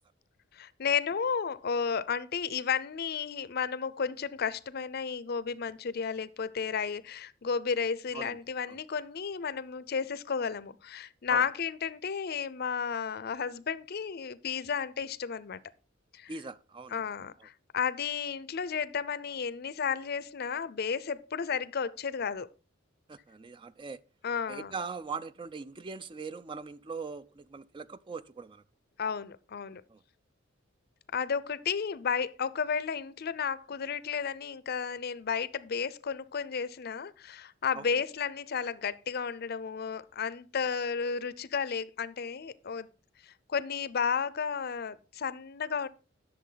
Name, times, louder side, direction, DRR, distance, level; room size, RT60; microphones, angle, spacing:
voice 1, 0.5-15.6 16.1-16.3 16.9-22.5 24.2-24.7 29.0-29.8 31.1-42.9 43.2-45.9, left 6 dB, 50° left, 0.5 m, -33 dB
voice 2, 16.3-17.0 23.1-24.0 24.5-28.6 29.9-30.0 37.7-37.9, right 4 dB, 25° right, 0.4 m, -41 dB
11.0 x 6.7 x 3.9 m
head